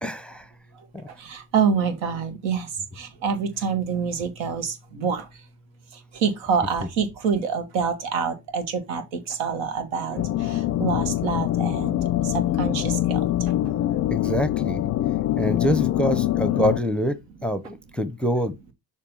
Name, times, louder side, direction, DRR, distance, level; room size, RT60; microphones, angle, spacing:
voice 1, 0.0-0.4 0.9-1.0 14.1-14.8 15.3-18.5, equal, 5° left, 0.6 m, -25 dB
voice 2, 1.2-2.7 2.9-5.3 6.1-12.0 12.2-13.2, right 6 dB, 90° right, 1.6 m, -26 dB
sound 1, 10.2-16.8, left 14 dB, 40° left, 0.4 m, -24 dB
6.7 x 2.7 x 5.3 m
cardioid pair, 100°, 42 cm